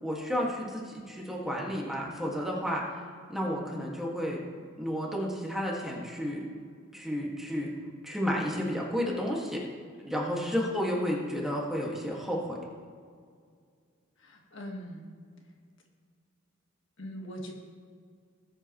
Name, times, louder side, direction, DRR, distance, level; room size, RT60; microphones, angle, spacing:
voice 1, 0.0-2.8 3.3-4.4 4.8-6.5 6.9-7.7 8.0-9.6 10.0-12.6, equal, ahead, -3 dB, 1.8 m, -31 dB
voice 2, 14.2-15.1 17.0-17.5, equal, 65° left, 1 dB, 1.6 m, -41 dB
19.0 x 8.1 x 3.1 m, 2.1 s
head